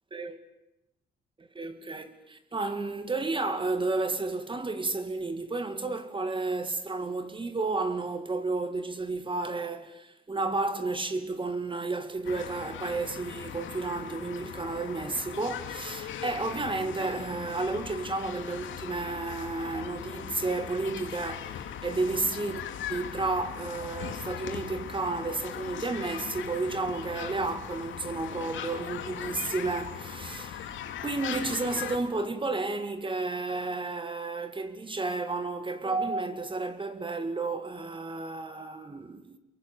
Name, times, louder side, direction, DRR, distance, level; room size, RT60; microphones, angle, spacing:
voice 1, 0.1-0.5 1.4-22.6 22.9-39.4, right 3 dB, 25° right, 2.4 m, -32 dB
sound 1, 12.2-32.0, left 9 dB, 75° left, 2.4 m, -39 dB
27.0 x 22.5 x 9.5 m
cardioid pair, 90°, 20 cm